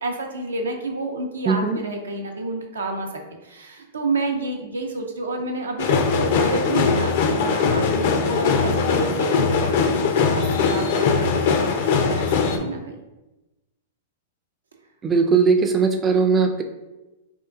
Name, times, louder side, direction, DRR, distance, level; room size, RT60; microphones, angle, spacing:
voice 1, 0.0-3.1 3.4-11.7 12.0-13.0, right 2 dB, 85° right, 3 dB, 0.5 m, -29 dB
voice 2, 1.5-1.8 15.0-16.6, right 5 dB, 20° right, 4 dB, 0.3 m, -19 dB
sound 1, 5.8-12.6, left 5 dB, 55° left, 0.4 m, -21 dB
3.6 x 2.5 x 2.4 m, 1.0 s
hypercardioid pair, 110°, 0 cm